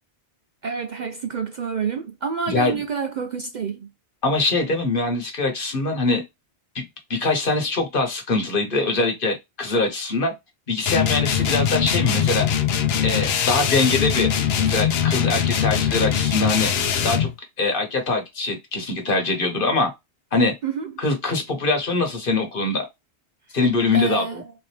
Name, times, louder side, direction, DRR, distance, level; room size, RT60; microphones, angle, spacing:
voice 1, 0.6-3.9 20.6-21.0 23.9-24.5, right 6 dB, 55° right, 0.5 m, -28 dB
voice 2, 2.5-2.8 4.2-6.2 6.7-6.8 7.1-10.3 10.7-12.5 13.0-14.3 14.6-16.7 17.0-17.3 17.6-19.9 20.3-20.5 21.0-22.9 23.5-24.2, left 3 dB, 55° left, 1.3 m, -23 dB
sound 1, 10.9-17.3, left 8 dB, 70° left, 0.9 m, -22 dB
3.8 x 2.9 x 3.2 m
omnidirectional pair, 1.1 m